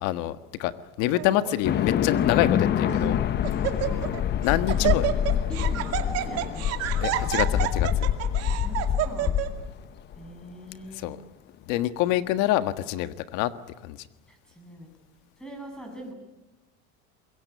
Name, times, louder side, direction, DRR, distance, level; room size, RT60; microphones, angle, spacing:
voice 1, 0.0-0.7 1.0-3.2 4.4-5.1 7.0-8.1 10.9-11.2 11.7-13.5 13.8-14.0, left 14 dB, 70° left, 11 dB, 1.6 m, -26 dB
Laughter, 1.1-1.5 2.3-2.4 2.9-3.2 3.4-4.2 4.4-9.5, right 14 dB, 50° right, 2.3 m, -29 dB
sound 1, 1.6-10.2, left 9 dB, 35° left, 1.0 m, -26 dB
voice 2, 3.8-4.3 4.8-5.0 5.6-6.8 8.6-8.8 9.0-9.5 10.2-11.1 14.3-14.9 15.4-16.1, equal, ahead, 4 dB, 7.6 m, -42 dB
24.5 x 22.0 x 9.5 m, 1.0 s
cardioid pair, 140°, 31 cm